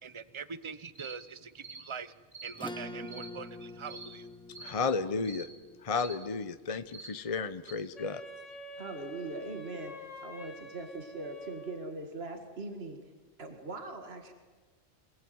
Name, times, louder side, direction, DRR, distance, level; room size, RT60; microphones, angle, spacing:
voice 1, 0.0-2.1 2.4-4.3, right 6 dB, 25° right, 15 dB, 0.9 m, -43 dB
sound 1, 1.0-1.2 1.6-1.8 2.3-2.5 3.1-3.3 3.9-4.1 4.5-4.7 5.2-5.5 6.0-6.2 6.9-7.1 7.7-7.8, right 4 dB, 75° right, 3.6 m, -46 dB
Acoustic guitar / Strum, 2.5-7.5, left 1 dB, 5° left, 1.8 m, -46 dB
voice 2, 4.6-5.5 5.8-8.2, left 4 dB, 30° left, 11 dB, 0.8 m, -33 dB
Wind instrument woodwind instrument, 8.0-12.1, right 1 dB, 75° left, 2.1 m, -47 dB
voice 3, 8.8-13.0 13.4-14.3, right 2 dB, 55° right, 5 dB, 2.3 m, -41 dB
27.5 x 20.5 x 9.5 m, 1.4 s
omnidirectional pair, 1.3 m